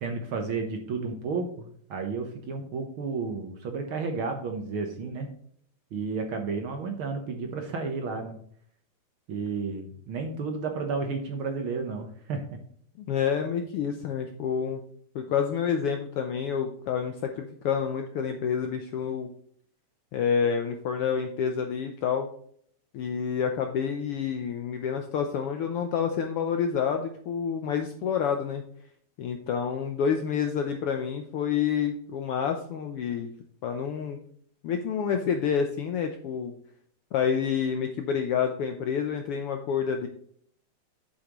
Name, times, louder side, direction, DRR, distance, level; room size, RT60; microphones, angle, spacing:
voice 1, 0.0-5.3 5.9-8.3 9.3-12.4, right 4 dB, 60° right, 4 dB, 1.4 m, -32 dB
voice 2, 13.0-14.8 15.1-19.3 20.1-22.3 22.9-28.6 29.2-33.3 33.6-34.2 34.6-36.5 37.1-40.1, left 7 dB, 80° left, 5 dB, 1.3 m, -28 dB
8.4 x 7.5 x 3.0 m, 0.62 s
omnidirectional pair, 3.4 m